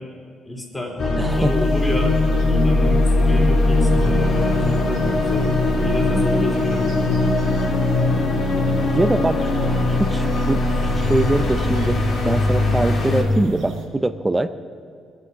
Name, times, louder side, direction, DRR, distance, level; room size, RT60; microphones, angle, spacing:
voice 1, 0.4-2.2 2.4-5.5 5.8-7.2, left 1 dB, 15° left, -1 dB, 3.0 m, -30 dB
sound 1, 1.0-13.2, left 2 dB, 50° left, 2.7 m, -20 dB
voice 2, 1.2-1.5 6.2-6.6 8.9-9.5 9.9-10.6 10.9-12.0 12.2-14.5, right 2 dB, 10° right, 11 dB, 0.5 m, -23 dB
sound 2, 1.3-13.8, left 1 dB, 70° right, 2.4 m, -36 dB
22.0 x 8.2 x 6.1 m, 2.1 s
cardioid pair, 125°, 0 cm